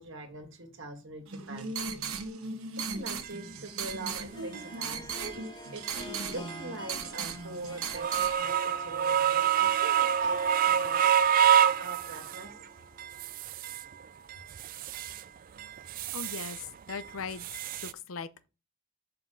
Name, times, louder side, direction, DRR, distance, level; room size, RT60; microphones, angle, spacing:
voice 1, 0.0-1.7 2.8-5.1 5.4-5.8 6.3-11.1 11.8-12.5, right 2 dB, 55° right, 1.9 m, -43 dB
sound 1, 1.3-8.3, right 5 dB, 75° right, 1.1 m, -37 dB
Harp, 2.9-13.3, left 1 dB, 20° left, 0.6 m, -49 dB
sound 2, 3.2-3.3 3.9-4.0 4.5-4.6 5.2-5.3 5.8-6.0 6.5-6.6 7.1-7.2 7.8-12.5 13.0-13.9 14.3-15.2 15.6-16.6 16.9-17.9, right 9 dB, 40° right, 0.3 m, -27 dB
voice 2, 15.8-17.5 17.8-18.5, left 5 dB, 65° left, 0.6 m, -40 dB
7.3 x 5.7 x 3.8 m
head